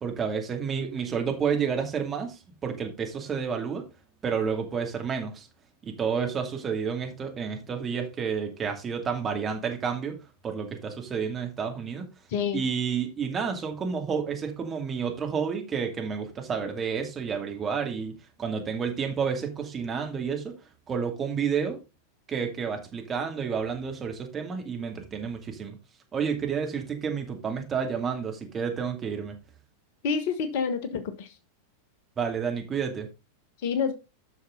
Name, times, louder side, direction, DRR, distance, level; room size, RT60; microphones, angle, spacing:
voice 1, 0.0-3.9 4.2-5.5 5.8-10.2 10.4-12.1 12.5-18.1 18.4-20.5 20.9-21.8 22.3-25.8 26.1-29.3 32.2-33.1, right 6 dB, 20° right, 2.5 m, -30 dB
voice 2, 12.3-12.6 30.0-31.3 33.6-33.9, left 6 dB, 50° left, 1.3 m, -28 dB
9.8 x 6.3 x 3.9 m
figure-of-eight pair, 90°, 0 cm